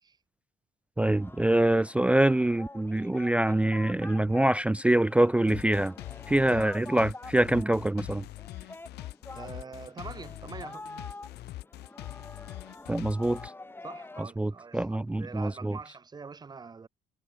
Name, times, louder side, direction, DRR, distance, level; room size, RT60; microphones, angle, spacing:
voice 1, 1.0-5.9 6.3-8.2 12.9-13.4 14.4-15.8, right 1 dB, 5° right, 0.4 m, -25 dB
Singing, 1.1-14.2, left 2 dB, 15° left, 3.6 m, -47 dB
sound 1, 5.5-13.5, left 16 dB, 80° left, 1.9 m, -43 dB
voice 2, 9.3-10.9 13.8-16.9, right 5 dB, 25° right, 1.6 m, -44 dB
cardioid pair, 110°, 17 cm